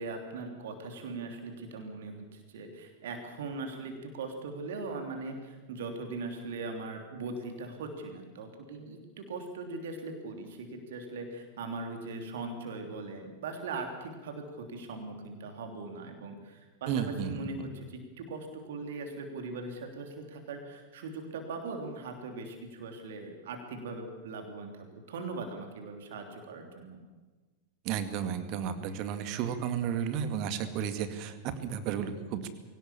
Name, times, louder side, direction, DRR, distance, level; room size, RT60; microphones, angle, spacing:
voice 1, 0.0-27.0, right 3 dB, 60° right, 4 dB, 3.2 m, -40 dB
voice 2, 16.9-17.5 27.8-32.5, right 8 dB, 40° right, 9 dB, 2.1 m, -33 dB
23.0 x 18.0 x 7.2 m, 1.3 s
figure-of-eight pair, 90°, 0 cm